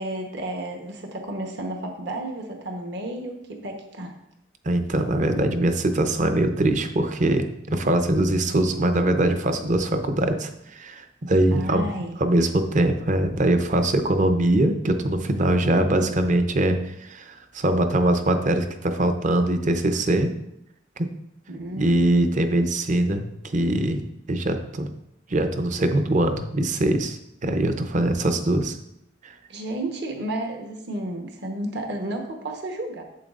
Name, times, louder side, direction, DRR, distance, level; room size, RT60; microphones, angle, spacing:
voice 1, 0.0-4.1 11.5-12.2 21.5-22.0 29.5-33.0, right 1 dB, 60° right, 2 dB, 1.0 m, -32 dB
voice 2, 4.6-11.9 12.2-20.3 21.0-21.1 21.8-24.0 24.3-24.9 25.3-28.8 29.2-29.4, right 1 dB, 40° right, 7 dB, 0.6 m, -22 dB
9.1 x 7.1 x 2.5 m, 0.81 s
head